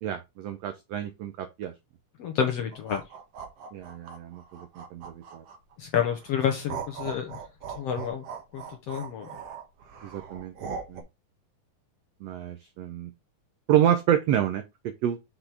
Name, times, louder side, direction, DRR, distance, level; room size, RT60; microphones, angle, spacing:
voice 1, 0.0-1.7 3.7-5.4 10.0-11.0 12.2-13.1 13.7-14.6 15.0-15.2, right 10 dB, 85° right, 1.4 m, -28 dB
voice 2, 2.2-3.0 5.8-7.4 7.8-8.2 8.5-9.3, left 8 dB, 70° left, 1.5 m, -29 dB
sound 1, 2.7-5.7 6.2-11.0, right 6 dB, 55° right, 2.0 m, -40 dB
6.0 x 6.0 x 3.4 m
omnidirectional pair, 3.9 m